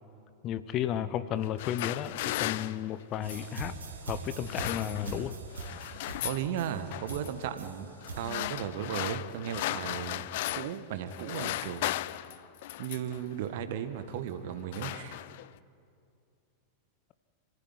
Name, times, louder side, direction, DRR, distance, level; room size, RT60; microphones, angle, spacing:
voice 1, 0.4-3.8 4.1-5.4, left 10 dB, 35° left, 14 dB, 0.9 m, -33 dB
sound 1, 1.4-3.6 4.3-5.3 5.5-6.5 6.9-7.3 8.0-10.8 11.1-13.2 14.0-14.2 14.5-15.6, left 16 dB, 50° left, 0.5 m, -36 dB
sound 2, 3.2-8.4, right 4 dB, 70° right, 2.9 m, -42 dB
voice 2, 6.2-7.9 8.1-10.3 10.5-11.9 12.8-15.2, right 9 dB, 50° right, 9 dB, 1.7 m, -35 dB
27.5 x 15.0 x 9.8 m, 2.5 s
figure-of-eight pair, 90°, 0 cm